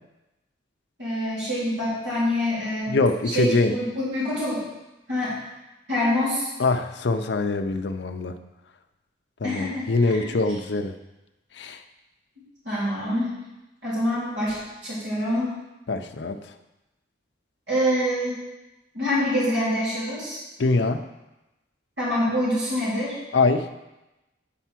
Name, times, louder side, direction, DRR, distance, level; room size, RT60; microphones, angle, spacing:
voice 1, 1.0-3.0 3.3-4.6 5.1-5.4 5.9-6.5 9.4-10.3 12.6-13.3 13.8-15.5 17.7-18.4 18.9-20.4 22.0-23.2, equal, 65° right, -8 dB, 3.2 m, -26 dB
voice 2, 2.9-3.8 6.6-8.4 9.4-10.9 11.6-11.8 15.9-16.5 20.6-21.0 23.3-23.7, left 3 dB, 65° left, 7 dB, 0.5 m, -23 dB
8.9 x 4.6 x 5.9 m, 1.0 s
head